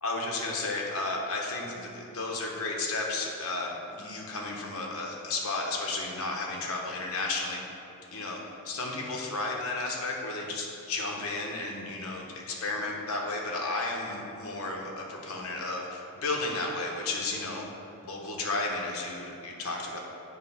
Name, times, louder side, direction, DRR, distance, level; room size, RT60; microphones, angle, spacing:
voice 1, 0.0-7.6 8.1-8.4 8.6-17.6 18.0-20.0, left 2 dB, 65° left, -1 dB, 1.0 m, -33 dB
8.1 x 3.2 x 5.5 m, 2.8 s
head